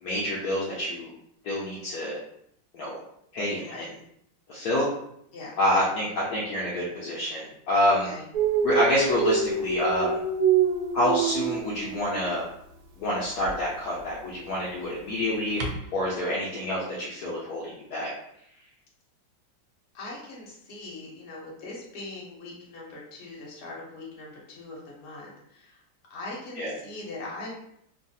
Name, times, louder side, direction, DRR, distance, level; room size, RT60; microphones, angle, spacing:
voice 1, 0.0-1.1 1.4-2.2 2.7-2.9 3.3-3.9 4.5-4.9 5.6-8.1 8.6-10.2 10.9-12.4 13.0-15.6 15.9-18.1 26.6-26.7, left 1 dB, 70° left, -5 dB, 1.0 m, -27 dB
voice 2, 5.3-5.8 8.0-8.2 19.9-25.8 26.1-27.5, left 2 dB, 50° left, -4 dB, 0.9 m, -41 dB
Dog, 8.3-12.3 13.4-13.5 15.6-15.7, right 6 dB, 70° right, 0.9 m, -26 dB
3.2 x 2.3 x 2.6 m, 0.73 s
omnidirectional pair, 2.0 m